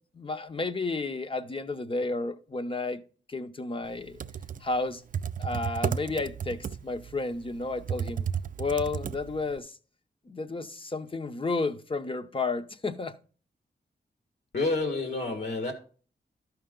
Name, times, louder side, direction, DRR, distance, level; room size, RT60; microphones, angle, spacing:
voice 1, 0.1-3.0 3.3-4.2 4.6-5.0 5.4-8.3 8.6-9.8 10.3-13.1, left 3 dB, 30° left, 0.8 m, -32 dB
Computer keyboard, 4.0-9.6, right 7 dB, 50° right, 0.4 m, -33 dB
voice 2, 14.5-15.7, left 3 dB, 70° left, 1.8 m, -29 dB
13.0 x 5.8 x 3.8 m
wide cardioid pair, 125°, 18 cm